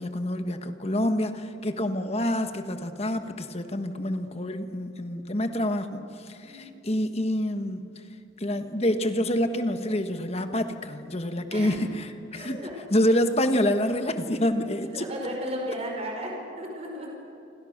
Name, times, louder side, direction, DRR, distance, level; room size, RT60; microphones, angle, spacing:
voice 1, 0.0-7.9 8.4-12.6 12.9-15.1, left 1 dB, 30° left, 8 dB, 1.4 m, -27 dB
voice 2, 12.3-13.0 14.9-17.1, equal, 30° right, 0 dB, 5.0 m, -34 dB
29.0 x 26.0 x 6.7 m, 2.9 s
head